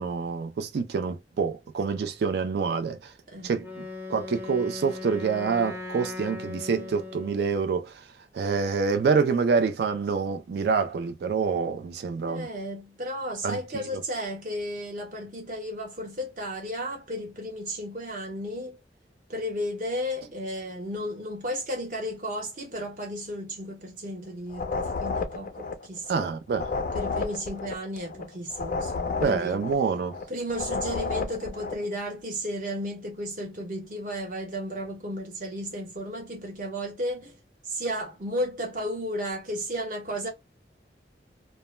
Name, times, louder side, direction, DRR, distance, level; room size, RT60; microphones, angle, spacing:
voice 1, 0.0-3.1 3.4-3.7 4.1-8.0 8.3-12.5 13.4-14.0 26.1-26.7 29.2-30.2, right 5 dB, 65° right, 0.3 m, -27 dB
voice 2, 3.3-3.6 12.3-18.8 19.3-26.4 26.9-29.6 30.3-37.3 37.7-40.3, equal, 45° right, 0.9 m, -34 dB
Wind instrument woodwind instrument, 3.6-7.6, left 3 dB, 15° right, 0.5 m, -38 dB
sound 1, 24.5-31.9, left 4 dB, 45° left, 0.3 m, -32 dB
2.1 x 2.0 x 3.0 m
head